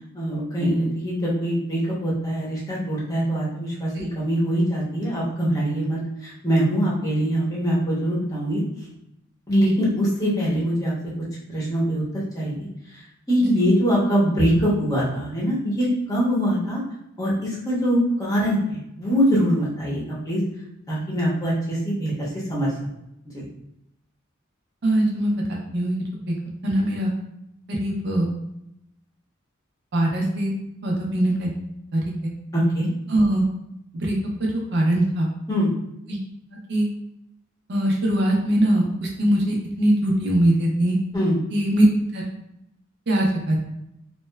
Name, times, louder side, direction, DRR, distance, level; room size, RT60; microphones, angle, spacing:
voice 1, 0.1-3.9 4.1-8.6 9.5-10.9 11.5-12.0 12.3-12.7 13.3-16.8 17.2-20.4 20.9-22.1 22.5-22.7 23.3-23.4 32.5-32.9 35.5-35.7 41.1-41.4, equal, 20° left, -6 dB, 0.8 m, -23 dB
voice 2, 24.8-26.0 26.6-27.1 27.7-28.3 29.9-30.5 30.8-31.5 31.9-32.3 33.1-33.4 33.9-34.1 34.4-35.3 36.1-36.2 36.7-36.9 37.7-41.0 41.5-41.9 42.1-42.3 43.1-43.6, right 1 dB, 55° right, -2 dB, 0.5 m, -21 dB
2.8 x 2.1 x 2.2 m, 0.82 s
head